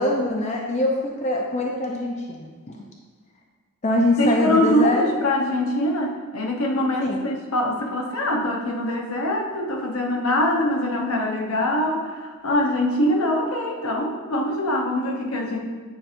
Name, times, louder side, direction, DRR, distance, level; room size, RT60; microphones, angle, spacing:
voice 1, 0.0-2.8 3.8-5.0 7.0-7.2, left 1 dB, 30° left, 0 dB, 0.5 m, -23 dB
voice 2, 4.2-15.6, left 1 dB, 70° left, 0 dB, 0.9 m, -23 dB
9.0 x 4.4 x 2.6 m, 1.5 s
head